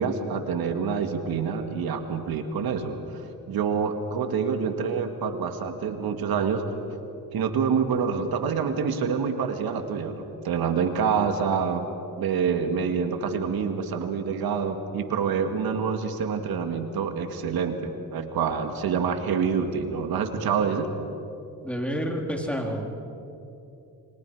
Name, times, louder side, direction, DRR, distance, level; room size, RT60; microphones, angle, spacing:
voice 1, 0.0-6.6 7.3-11.8 12.2-20.9, right 6 dB, 80° right, 6 dB, 2.1 m, -27 dB
voice 2, 21.6-22.9, equal, 5° left, 1 dB, 4.0 m, -29 dB
28.5 x 25.0 x 5.0 m, 2.8 s
cardioid pair, 80°, 36 cm